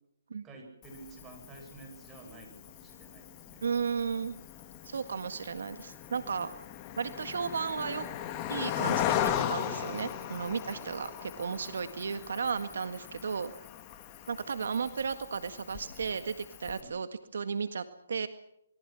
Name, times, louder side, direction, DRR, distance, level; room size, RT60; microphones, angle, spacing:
voice 1, 0.4-3.7 10.7-11.0 16.8-17.0, right 3 dB, 15° right, 3 dB, 7.9 m, -51 dB
Cricket, 0.8-16.8, left 10 dB, 25° left, 2.3 m, -38 dB
voice 2, 3.6-4.3 4.8-6.5 7.0-8.1 8.5-13.5 14.3-18.3, right 6 dB, 70° right, 10 dB, 1.8 m, -34 dB
27.0 x 22.5 x 6.2 m, 0.79 s
hypercardioid pair, 155°, 0 cm